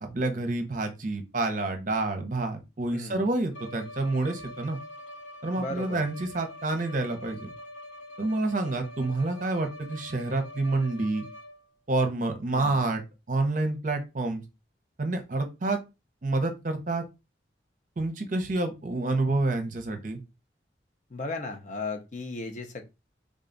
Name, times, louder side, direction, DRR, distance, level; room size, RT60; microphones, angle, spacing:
voice 1, 0.0-4.8 5.4-7.5 8.2-11.2 11.9-13.0 13.3-14.4 15.0-15.8 16.2-17.0 18.0-20.2, right 2 dB, 45° right, 6 dB, 0.7 m, -28 dB
voice 2, 2.9-3.3 5.6-6.0 12.5-12.8 21.1-22.8, left 3 dB, 40° left, 4 dB, 0.6 m, -36 dB
Bowed string instrument, 3.5-11.8, left 1 dB, 90° left, 0.7 m, -45 dB
3.7 x 2.3 x 3.8 m, 0.25 s
head